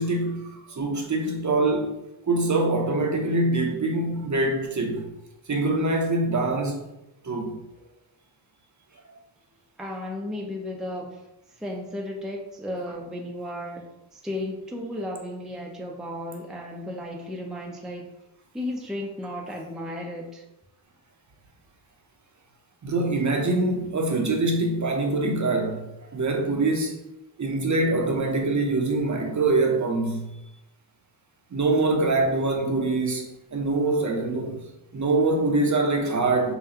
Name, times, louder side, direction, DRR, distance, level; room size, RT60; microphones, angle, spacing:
voice 1, 0.0-2.0 2.3-5.1 5.5-6.8 7.2-7.6 22.8-27.1 27.4-30.3 31.5-34.6 34.9-36.6, right 2 dB, 40° right, 1 dB, 0.8 m, -24 dB
voice 2, 9.8-11.1 11.6-13.9 14.1-18.1 18.5-20.4, left 1 dB, ahead, -1 dB, 0.6 m, -34 dB
5.7 x 2.2 x 2.8 m, 0.92 s
cardioid pair, 80°, 48 cm